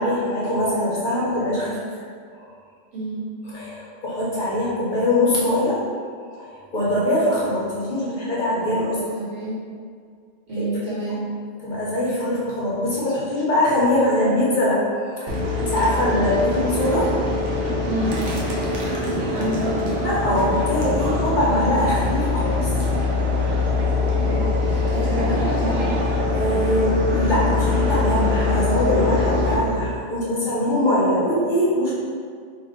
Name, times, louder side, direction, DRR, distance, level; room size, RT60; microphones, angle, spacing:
voice 1, 0.0-1.8 3.5-5.8 6.3-9.0 10.6-10.7 11.6-17.1 18.6-18.9 20.0-22.7 26.3-31.9, left 1 dB, 45° left, -7 dB, 0.8 m, -22 dB
voice 2, 2.9-3.2 9.1-9.6 10.5-11.2 17.8-18.1 19.3-19.8 24.2-26.0, right 1 dB, 90° right, -9 dB, 1.6 m, -28 dB
sound 1, 15.3-29.6, left 3 dB, 60° right, 0.8 m, -23 dB
2.9 x 2.6 x 3.8 m, 2.1 s
omnidirectional pair, 1.3 m